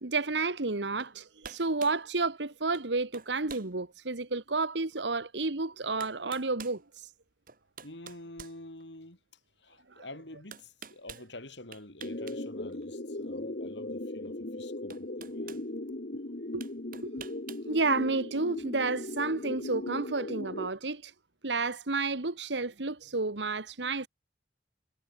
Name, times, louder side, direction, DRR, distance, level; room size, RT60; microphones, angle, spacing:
voice 1, 0.0-6.8 10.0-10.1 16.5-16.6 17.0-17.2 17.7-21.1 21.4-24.1, right 3 dB, 85° right, 1.7 m, -31 dB
sound 1, 1.0-1.2 1.4-2.0 2.7-2.9 3.1-3.7 4.3-4.4 5.5-5.6 6.0-6.8 7.5-9.1 10.5-11.3 11.7-12.4 12.7-12.8 14.3-14.4 14.9-15.7 16.6-17.7, right 6 dB, 55° right, 4.1 m, -47 dB
voice 2, 7.8-9.2 9.6-15.6, left 1 dB, 85° left, 6.9 m, -48 dB
sound 2, 12.0-20.7, left 1 dB, 55° left, 1.6 m, -38 dB
head